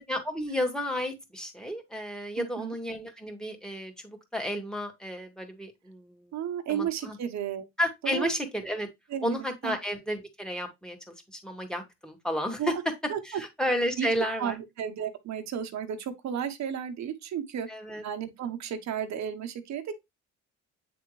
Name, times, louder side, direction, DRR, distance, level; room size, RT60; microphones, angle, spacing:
voice 1, 0.0-6.2 6.7-7.2 7.8-8.9 9.2-12.6 13.3-14.6 17.7-18.0, equal, ahead, 1.9 m, -32 dB
voice 2, 2.4-2.7 6.3-7.6 8.0-8.3 9.1-9.7 12.6-12.8 13.1-13.4 14.0-14.1 14.4-17.7 18.0-20.0, right 8 dB, 65° right, 1.1 m, -33 dB
8.6 x 3.5 x 3.2 m
cardioid pair, 90°, 30 cm